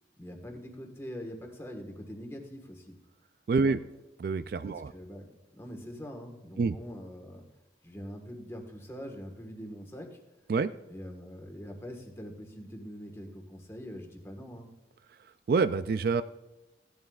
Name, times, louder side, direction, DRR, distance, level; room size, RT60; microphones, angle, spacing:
voice 1, 0.2-3.0 3.6-3.8 4.6-7.4 7.8-10.2 10.9-14.7, equal, 15° left, 2 dB, 1.4 m, -43 dB
voice 2, 3.5-3.8 4.2-4.9 6.6-6.7 10.5-10.7 15.5-16.2, right 4 dB, 55° right, 13 dB, 0.3 m, -26 dB
16.5 x 11.0 x 2.4 m, 1.0 s
head